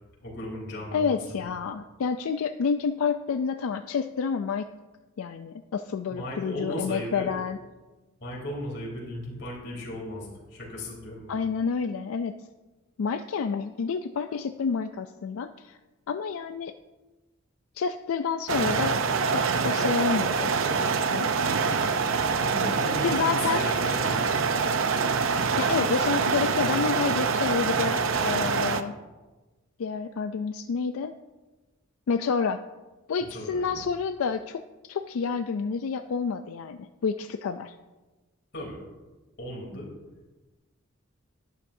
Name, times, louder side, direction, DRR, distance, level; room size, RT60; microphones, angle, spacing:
voice 1, 0.2-1.4 6.1-7.3 8.2-11.3 22.3-24.3 33.3-33.8 38.5-38.8 39.4-39.9, left 1 dB, 55° left, -3 dB, 3.2 m, -36 dB
voice 2, 0.9-4.7 5.2-7.6 11.3-12.3 13.0-15.8 16.1-16.7 17.8-19.0 19.3-20.5 21.1-21.3 23.0-23.6 25.6-28.9 29.8-31.1 32.1-32.6 33.1-34.6 34.9-37.7, left 5 dB, 90° left, 8 dB, 0.4 m, -29 dB
sound 1, 18.5-28.8, right 5 dB, 70° right, 0.6 m, -25 dB
11.5 x 10.0 x 2.7 m, 1.2 s
head